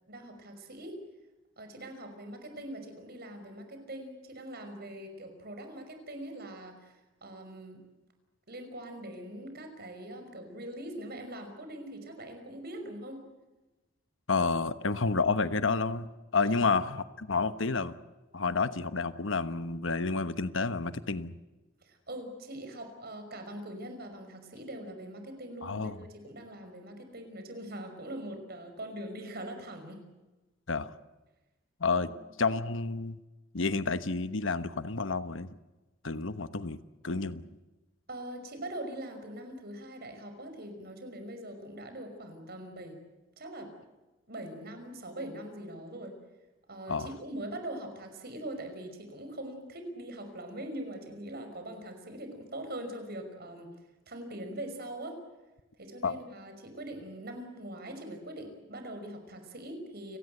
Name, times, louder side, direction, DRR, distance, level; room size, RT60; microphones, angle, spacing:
voice 1, 0.1-1.0 1.6-7.8 8.5-13.2 16.4-16.6 21.8-30.0 32.0-32.1 38.1-43.0 43.4-43.7 44.3-46.2 46.7-53.7 54.1-55.2 55.8-60.2, right 1 dB, 55° right, 7 dB, 5.6 m, -42 dB
voice 2, 14.3-16.1 16.3-17.9 18.3-21.3 25.6-26.0 30.7-30.9 31.8-32.1 32.4-33.2 33.5-35.5 36.0-36.8 37.0-37.4 46.9-47.1 56.0-56.1, left 4 dB, 75° left, 12 dB, 1.2 m, -30 dB
30.0 x 18.5 x 8.0 m, 1.1 s
head